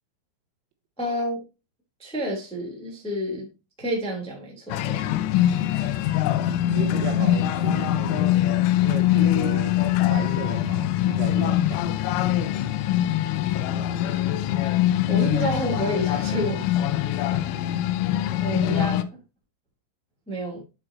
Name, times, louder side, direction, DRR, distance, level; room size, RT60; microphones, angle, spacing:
voice 1, 1.0-1.4 2.0-3.5 3.8-5.1 14.1-14.2 14.6-14.8 15.1-16.7 17.3-17.6 18.3-19.2 20.3-20.6, equal, ahead, 1.7 m, -29 dB
sound 1, 4.7-19.0, left 12 dB, 80° left, 2.7 m, -23 dB
voice 2, 6.7-8.4 8.8-9.8 10.1-12.0 18.4-18.5, right 8 dB, 85° right, 3.7 m, -35 dB
8.8 x 7.7 x 2.8 m
omnidirectional pair, 5.9 m